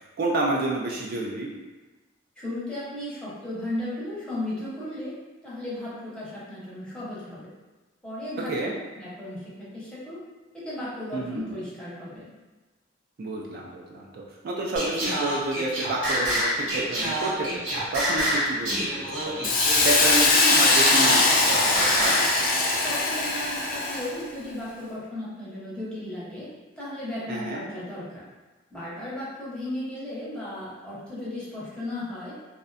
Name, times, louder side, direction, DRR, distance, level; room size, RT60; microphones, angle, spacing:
voice 1, 0.2-1.5 8.4-8.7 11.1-11.4 13.2-19.0 19.4-19.5 19.8-22.2 27.3-27.6, right 2 dB, 50° right, -2 dB, 0.3 m, -29 dB
voice 2, 2.4-5.2 5.4-7.5 8.0-8.5 8.9-9.4 9.7-10.2 10.5-12.3 22.8-26.5 26.7-28.2 28.7-32.4, left 1 dB, 5° left, -9 dB, 0.7 m, -35 dB
Singing, 14.8-22.3, equal, 90° right, 1.1 m, -28 dB
Hiss, 19.4-24.2, left 3 dB, 45° left, 0.3 m, -21 dB
2.5 x 2.1 x 2.4 m, 1.2 s
head